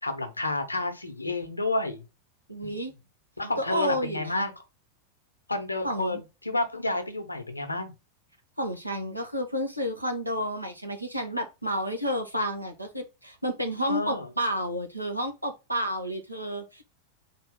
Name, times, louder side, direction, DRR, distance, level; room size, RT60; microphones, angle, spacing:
voice 1, 0.0-2.1 2.6-2.8 3.4-4.5 5.5-7.9 13.8-14.3, left 2 dB, 85° left, 0.8 m, -30 dB
voice 2, 2.5-2.9 3.6-4.4 5.8-6.2 8.6-16.8, equal, 90° right, 1.0 m, -30 dB
4.2 x 2.7 x 3.6 m
figure-of-eight pair, 90°, 0 cm